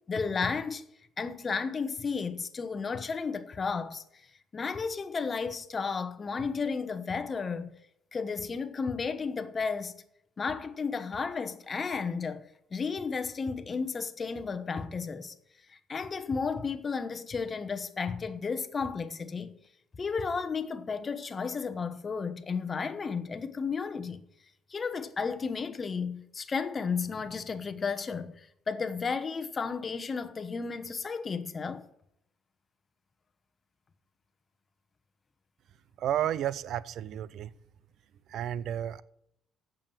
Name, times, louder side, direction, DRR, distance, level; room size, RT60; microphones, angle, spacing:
voice 1, 0.1-0.9 1.2-4.0 4.5-7.7 8.1-9.9 10.4-12.4 12.7-15.3 15.7-19.5 20.0-24.2 24.7-31.8, left 5 dB, 30° left, 1.0 m, -33 dB
voice 2, 36.0-37.5 38.3-39.0, right 11 dB, 65° right, 0.5 m, -32 dB
8.7 x 7.1 x 7.2 m
cardioid pair, 105°, 0 cm